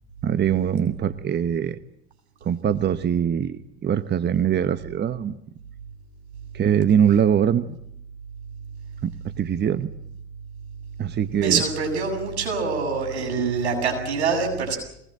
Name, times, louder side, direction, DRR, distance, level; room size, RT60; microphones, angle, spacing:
voice 1, 0.2-1.8 2.4-5.4 6.5-7.8 9.0-9.9 11.0-11.6, right 8 dB, 30° right, 13 dB, 1.1 m, -22 dB
voice 2, 11.3-14.8, right 5 dB, 90° right, 3 dB, 7.8 m, -25 dB
23.0 x 20.0 x 9.0 m, 0.75 s
hypercardioid pair, 80°, 32 cm